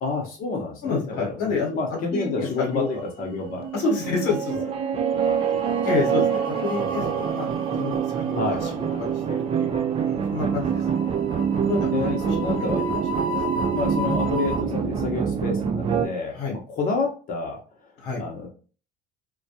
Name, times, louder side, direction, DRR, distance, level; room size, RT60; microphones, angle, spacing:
voice 1, 0.0-3.7 4.5-4.7 5.1-6.1 6.8-7.1 8.3-9.0 11.9-12.8 13.7-17.9 18.2-18.5, left 3 dB, 50° left, 0 dB, 0.7 m, -30 dB
voice 2, 0.8-1.8 2.1-3.0 3.7-4.6 5.8-7.5 7.8-10.8 11.6-12.2 12.4-12.5 13.2-13.3 16.3-16.5 18.0-18.2, left 4 dB, 80° left, 0 dB, 1.0 m, -28 dB
sound 1, 2.6-3.3 3.6-3.9 5.1-14.6, left 2 dB, 80° right, 0.9 m, -36 dB
sound 2, 3.2-16.1, right 7 dB, 30° right, 0.4 m, -25 dB
2.2 x 2.2 x 2.7 m, 0.36 s
hypercardioid pair, 75°, 19 cm